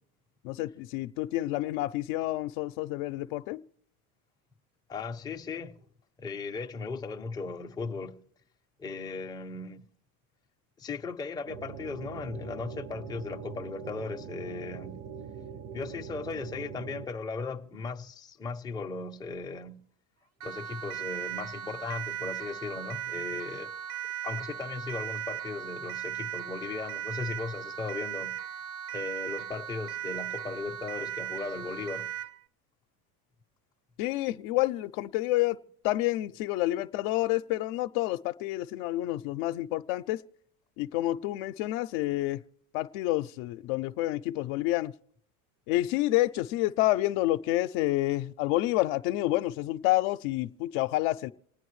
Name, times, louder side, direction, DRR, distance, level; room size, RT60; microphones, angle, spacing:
voice 1, 0.4-3.6 34.0-35.6 35.8-40.2 40.8-42.4 42.7-44.9 45.7-51.3, left 17 dB, 65° left, 0.6 m, -29 dB
voice 2, 4.9-5.8 6.2-8.2 8.8-9.8 10.8-15.0 15.7-19.8 20.4-23.7 24.2-28.3 28.9-32.1, left 4 dB, 10° left, 0.5 m, -37 dB
sound 1, 11.5-17.1, right 7 dB, 35° right, 0.6 m, -42 dB
Siren, 20.4-32.4, right 11 dB, 70° right, 1.2 m, -37 dB
27.5 x 9.3 x 3.1 m
supercardioid pair, 100°, 45 cm